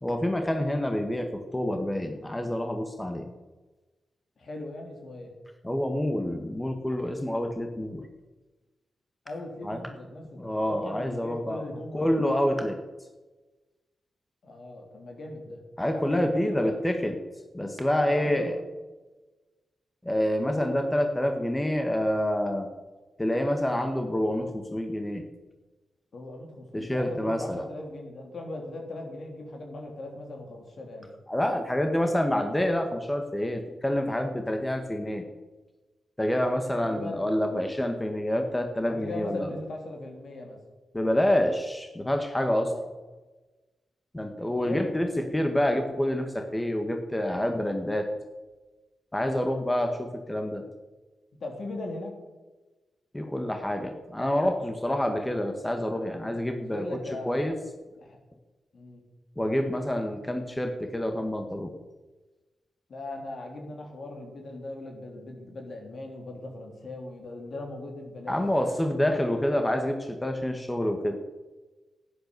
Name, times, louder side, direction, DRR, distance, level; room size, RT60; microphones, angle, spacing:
voice 1, 0.0-3.3 5.6-8.0 9.6-9.8 10.4-11.6 11.9-12.8 15.8-17.1 17.5-18.5 20.0-22.7 23.2-25.2 26.7-27.6 31.3-35.2 36.2-39.5 40.9-42.7 44.1-45.1 45.3-48.1 49.1-50.6 53.1-56.8 57.3-57.5 59.4-61.7 68.3-71.2, left 1 dB, 15° left, 5 dB, 1.7 m, -27 dB
voice 2, 4.4-5.3 9.2-12.1 14.4-15.6 15.9-16.8 18.0-18.6 20.5-21.0 26.1-31.1 36.8-37.2 38.8-40.6 42.6-42.9 44.4-45.1 51.4-52.1 56.7-57.5 58.0-58.2 58.7-59.0 62.9-68.6 69.0-69.2, left 2 dB, 65° left, 2 dB, 3.4 m, -39 dB
11.0 x 9.6 x 6.9 m, 1.2 s
supercardioid pair, 45°, 0 cm